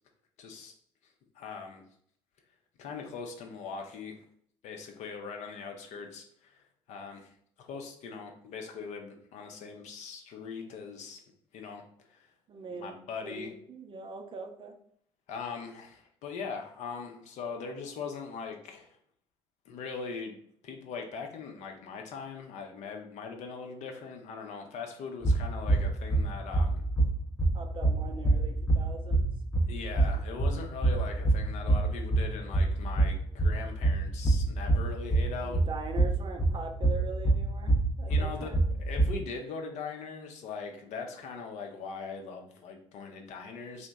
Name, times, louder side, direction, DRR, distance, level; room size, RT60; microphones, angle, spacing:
voice 1, 0.4-0.7 1.3-1.8 2.8-4.2 4.6-7.3 7.6-11.2 11.5-12.3 12.7-13.5 15.3-19.0 19.7-20.4 20.6-26.8 29.7-35.6 38.1-43.9, left 5 dB, 55° left, 3 dB, 0.6 m, -41 dB
voice 2, 12.5-14.7 27.5-29.3 35.4-38.6, right 4 dB, 35° right, 5 dB, 0.5 m, -42 dB
sound 1, 25.2-39.2, right 2 dB, 15° left, 0.6 m, -27 dB
2.8 x 2.2 x 3.5 m, 0.64 s
hypercardioid pair, 55°, 14 cm